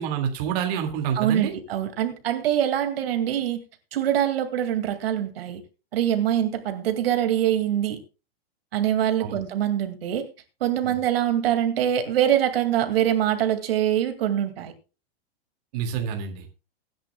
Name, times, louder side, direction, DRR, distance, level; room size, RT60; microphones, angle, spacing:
voice 1, 0.0-1.5 9.2-9.4 10.8-11.0 15.7-16.4, right 8 dB, 40° right, 2.1 m, -28 dB
voice 2, 1.2-3.6 3.9-5.6 5.9-8.0 8.7-10.2 10.6-14.7, right 10 dB, 65° right, 2.2 m, -24 dB
23.0 x 10.5 x 2.2 m
supercardioid pair, 170°, 31 cm